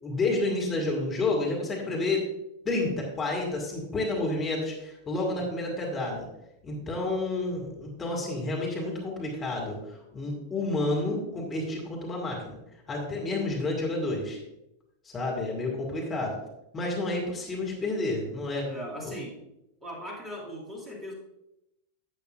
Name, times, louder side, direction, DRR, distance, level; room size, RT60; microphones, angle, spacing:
voice 1, 0.0-2.3 2.6-6.3 6.6-12.6 12.9-14.4 15.0-16.4 16.7-18.7 19.0-19.1, left 2 dB, 20° left, -1 dB, 2.1 m, -30 dB
voice 2, 18.6-19.4 19.8-21.1, equal, 15° right, -2 dB, 2.3 m, -38 dB
11.5 x 8.0 x 2.5 m, 0.87 s
figure-of-eight pair, 90°, 0 cm